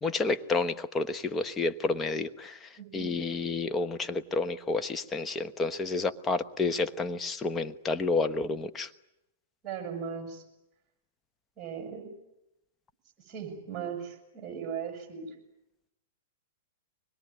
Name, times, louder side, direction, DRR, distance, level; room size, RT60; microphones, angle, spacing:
voice 1, 0.0-8.9, left 3 dB, 15° left, 8 dB, 1.1 m, -30 dB
voice 2, 2.8-3.1 9.6-10.4 11.6-12.1 13.3-15.3, right 7 dB, 25° right, 3 dB, 7.9 m, -38 dB
24.5 x 21.5 x 9.5 m, 0.89 s
hypercardioid pair, 120°, 0 cm